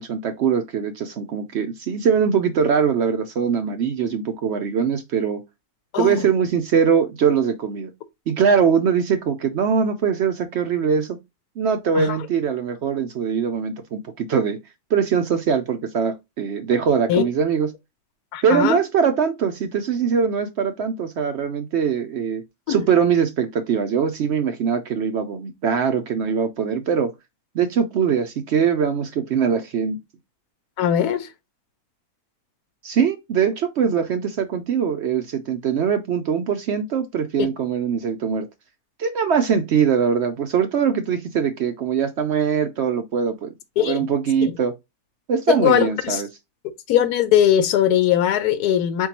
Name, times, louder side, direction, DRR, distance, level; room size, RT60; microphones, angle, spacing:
voice 1, 0.0-5.4 6.0-7.9 8.3-11.2 11.6-14.6 14.9-17.7 18.4-22.4 22.7-27.1 27.5-30.0 32.8-38.5 39.0-43.5 43.8-44.7 45.3-46.3, right 7 dB, 65° right, 0.7 m, -22 dB
voice 2, 18.3-18.8 22.7-22.8 30.8-31.3 43.8-44.0 44.4-44.5 45.5-46.2 46.9-49.1, left 10 dB, 85° left, 1.2 m, -20 dB
4.6 x 3.6 x 2.9 m
omnidirectional pair, 1.6 m